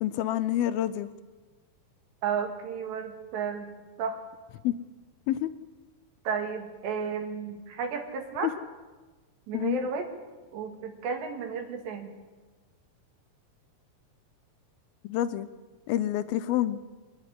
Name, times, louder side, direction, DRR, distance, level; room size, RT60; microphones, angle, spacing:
voice 1, 0.0-1.1 4.6-4.8 5.3-5.5 8.4-8.5 9.5-9.8 15.0-15.5 15.9-16.8, left 12 dB, 80° left, 12 dB, 2.2 m, -27 dB
voice 2, 2.2-3.7 4.0-4.2 6.3-8.5 9.5-10.1 10.5-12.1, right 6 dB, 80° right, 4 dB, 4.4 m, -33 dB
24.5 x 11.0 x 9.9 m, 1.3 s
omnidirectional pair, 5.0 m